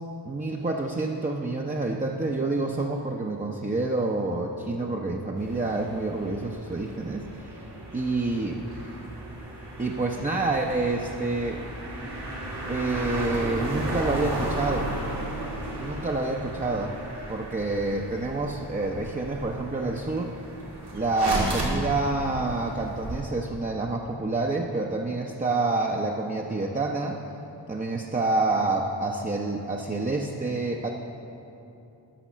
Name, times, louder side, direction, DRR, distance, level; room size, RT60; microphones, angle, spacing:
voice 1, 0.2-7.2 7.9-8.6 9.8-11.7 12.7-14.9 15.8-16.9 17.3-20.3 20.9-27.2 27.7-30.9, right 2 dB, 20° right, 0 dB, 0.6 m, -28 dB
sound 1, 5.4-23.2, right 1 dB, 80° right, 2.1 m, -35 dB
10.0 x 6.2 x 6.1 m, 2.8 s
wide cardioid pair, 65°, 41 cm